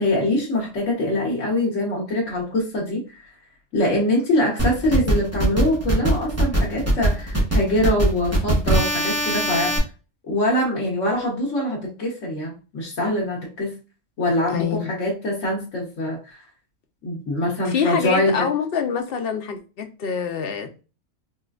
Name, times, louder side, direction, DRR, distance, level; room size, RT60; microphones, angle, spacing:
voice 1, 0.0-3.3 3.7-9.7 10.3-13.7 14.2-16.4 17.0-18.5, left 1 dB, 75° left, 1.3 m, -23 dB
sound 1, 4.6-9.8, right 1 dB, 15° right, 0.7 m, -22 dB
voice 2, 14.5-14.9 17.6-20.8, left 7 dB, 55° left, 0.7 m, -25 dB
4.2 x 2.3 x 2.3 m
omnidirectional pair, 1.3 m